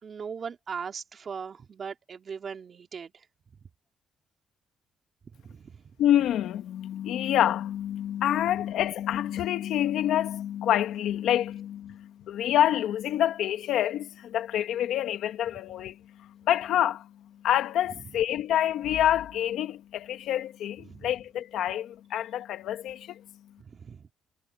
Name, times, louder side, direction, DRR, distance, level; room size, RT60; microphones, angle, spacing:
voice 1, 0.0-3.2 5.3-5.8 20.8-21.1 23.6-24.1, right 6 dB, 45° right, 3.0 m, -39 dB
voice 2, 6.0-17.1 17.4-23.2, left 11 dB, 80° left, 1.8 m, -27 dB
cardioid pair, 90°, 0 cm